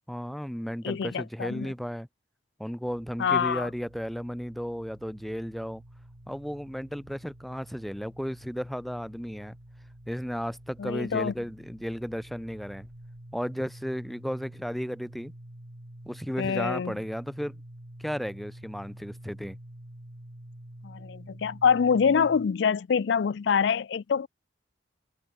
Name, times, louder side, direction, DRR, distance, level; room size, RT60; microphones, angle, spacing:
voice 1, 0.1-2.1 2.6-5.8 6.3-9.6 10.1-12.9 13.3-15.3 16.1-17.6 18.0-19.6, equal, ahead, 0.6 m, -34 dB
voice 2, 0.8-1.7 3.2-3.7 10.8-11.3 16.4-16.9 20.8-24.3, left 6 dB, 65° left, 0.4 m, -25 dB
sound 1, 2.9-22.5, right 1 dB, 70° right, 2.7 m, -48 dB
head